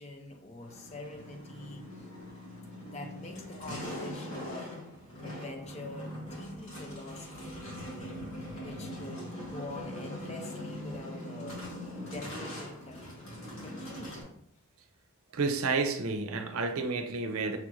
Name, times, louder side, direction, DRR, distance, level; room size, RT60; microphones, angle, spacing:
voice 1, 0.0-2.1 2.8-4.8 5.2-8.2 8.6-11.6 12.0-13.3 13.6-14.3, left 2 dB, 30° left, 0.5 m, -45 dB
sound 1, 0.6-14.2, left 1 dB, 65° left, 1.4 m, -42 dB
voice 2, 15.3-17.6, right 4 dB, 75° right, 0.6 m, -30 dB
5.8 x 2.5 x 3.0 m
head